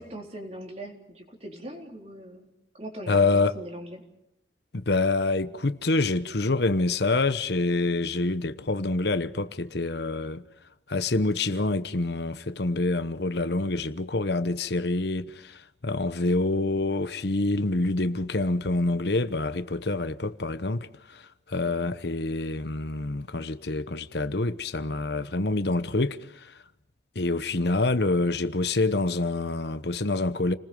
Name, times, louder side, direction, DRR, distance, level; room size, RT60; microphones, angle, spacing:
voice 1, 0.0-2.5 2.7-4.1 21.6-21.9, right 1 dB, 35° right, 3.9 m, -41 dB
voice 2, 3.1-3.6 4.7-10.4 10.9-26.6 27.1-30.6, left 2 dB, 65° left, 1.0 m, -26 dB
29.5 x 20.5 x 5.4 m
head